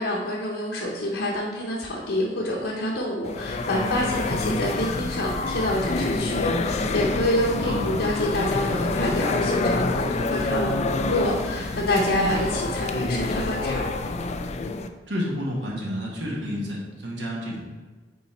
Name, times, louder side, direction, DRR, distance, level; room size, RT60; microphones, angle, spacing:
voice 1, 0.0-10.7 11.1-13.9, left 1 dB, 90° left, -4 dB, 0.8 m, -27 dB
sound 1, 3.3-14.9, left 3 dB, 40° left, 0.3 m, -27 dB
voice 2, 15.1-17.6, equal, 75° right, -2 dB, 1.4 m, -30 dB
5.5 x 4.1 x 4.3 m, 1.4 s
head